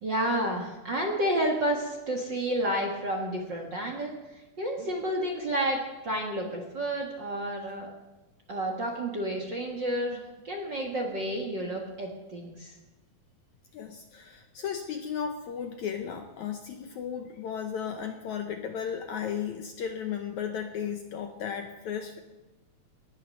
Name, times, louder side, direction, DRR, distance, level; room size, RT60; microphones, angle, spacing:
voice 1, 0.0-4.1 4.6-7.9 8.5-12.7, right 1 dB, 45° right, 1 dB, 1.6 m, -30 dB
voice 2, 13.7-22.2, left 8 dB, 70° left, 5 dB, 1.9 m, -35 dB
19.0 x 11.5 x 6.5 m, 1.1 s
omnidirectional pair, 4.2 m